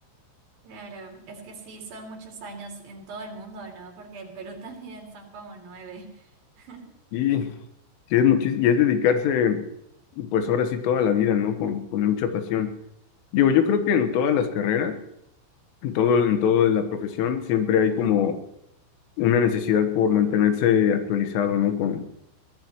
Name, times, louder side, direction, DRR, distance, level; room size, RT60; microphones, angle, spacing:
voice 1, 0.6-6.9, right 3 dB, 55° right, 1 dB, 4.0 m, -41 dB
voice 2, 7.1-7.5 8.1-9.6 10.2-12.7 13.3-15.0 15.8-18.4 19.2-22.1, left 8 dB, 85° left, 7 dB, 3.9 m, -22 dB
23.0 x 16.5 x 3.1 m, 0.76 s
omnidirectional pair, 5.6 m